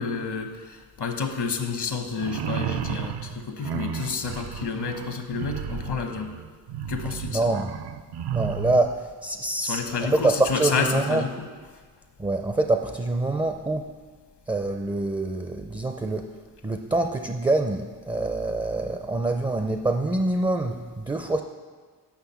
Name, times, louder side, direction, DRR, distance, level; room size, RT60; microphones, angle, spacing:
voice 1, 0.0-6.3 6.9-7.5 9.6-11.5, left 5 dB, 70° left, 6 dB, 1.0 m, -29 dB
sound 1, 2.1-8.9, right 8 dB, 65° right, 0.5 m, -33 dB
voice 2, 7.3-7.7 8.3-11.2 12.2-13.9 14.5-16.3 16.6-21.4, right 2 dB, 10° right, 6 dB, 0.4 m, -25 dB
5.9 x 5.6 x 6.9 m, 1.5 s
cardioid pair, 70°, 42 cm